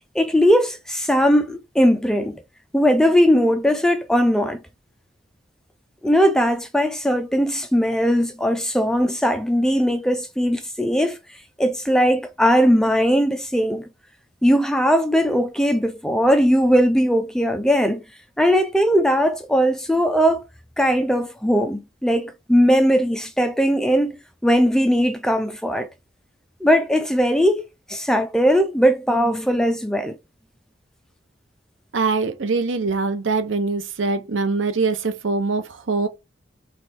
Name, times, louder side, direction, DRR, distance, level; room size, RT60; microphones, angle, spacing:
voice 1, 0.1-2.4 2.7-4.6 6.0-11.2 11.6-13.9 14.4-18.0 18.4-20.4 20.8-25.9 26.6-27.6 27.9-30.2, equal, 5° left, 0.4 m, -19 dB
voice 2, 31.9-36.1, right 4 dB, 90° right, 0.8 m, -23 dB
3.4 x 3.3 x 4.2 m
head